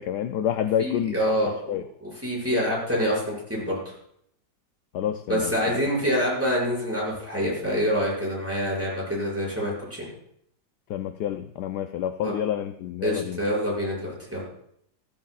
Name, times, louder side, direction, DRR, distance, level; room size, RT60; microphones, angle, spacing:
voice 1, 0.0-1.8 4.9-5.5 10.9-13.4, left 10 dB, 75° left, 8 dB, 1.1 m, -28 dB
voice 2, 0.8-1.8 2.0-3.9 5.3-10.0 12.2-12.3 13.0-14.4, equal, 5° right, -6 dB, 6.1 m, -26 dB
15.0 x 14.0 x 2.4 m, 0.72 s
omnidirectional pair, 2.0 m